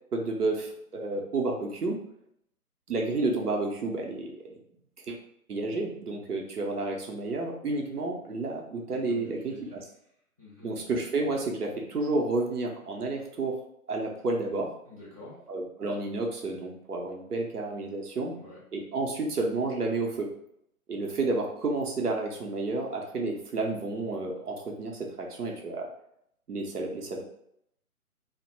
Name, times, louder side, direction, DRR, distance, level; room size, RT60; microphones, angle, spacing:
voice 1, 0.1-2.0 2.9-4.5 5.1-5.2 5.5-9.8 10.6-13.6 13.9-14.7 15.5-18.3 18.7-20.3 20.9-25.9 26.5-27.2, right 2 dB, 80° right, 0 dB, 0.7 m, -31 dB
voice 2, 8.9-9.8 10.4-10.8 14.8-15.4 18.3-18.6, left 2 dB, 25° right, -6 dB, 0.5 m, -47 dB
2.2 x 2.0 x 2.9 m, 0.72 s
figure-of-eight pair, 140°, 45 cm